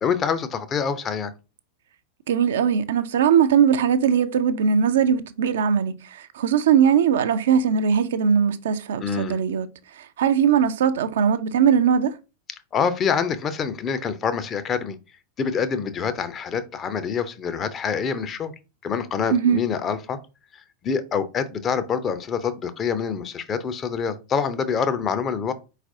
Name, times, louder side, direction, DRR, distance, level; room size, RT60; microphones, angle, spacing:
voice 1, 0.0-1.3 9.0-9.4 12.7-15.0 15.4-18.5 18.8-20.2 20.5-25.5, left 6 dB, 25° left, 0.5 m, -26 dB
voice 2, 2.3-9.7 10.0-12.1 19.3-19.6, right 7 dB, 60° right, 0.4 m, -20 dB
4.5 x 4.0 x 2.6 m
figure-of-eight pair, 90°, 0 cm